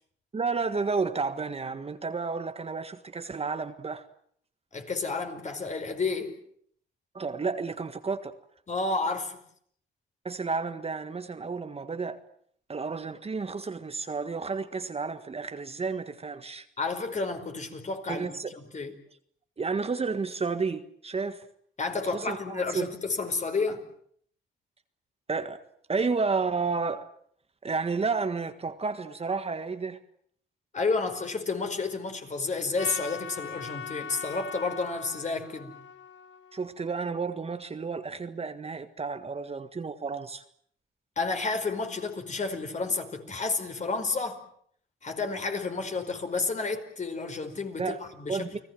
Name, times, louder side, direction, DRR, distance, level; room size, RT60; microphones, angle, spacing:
voice 1, 0.3-4.1 7.1-8.3 10.2-12.2 12.7-16.6 18.1-18.5 19.6-21.5 22.1-22.9 25.3-25.6 25.9-27.1 27.6-30.0 36.5-40.4 47.8-48.0 48.3-48.6, right 4 dB, 30° right, 1.6 m, -31 dB
voice 2, 4.7-6.3 8.7-9.4 16.8-18.9 21.8-23.8 30.7-35.8 41.2-44.4 45.0-48.6, left 3 dB, 35° left, 5.0 m, -31 dB
Trumpet, 32.8-37.1, left 7 dB, 65° left, 2.0 m, -41 dB
30.0 x 19.5 x 7.7 m
cardioid pair, 90°, 20 cm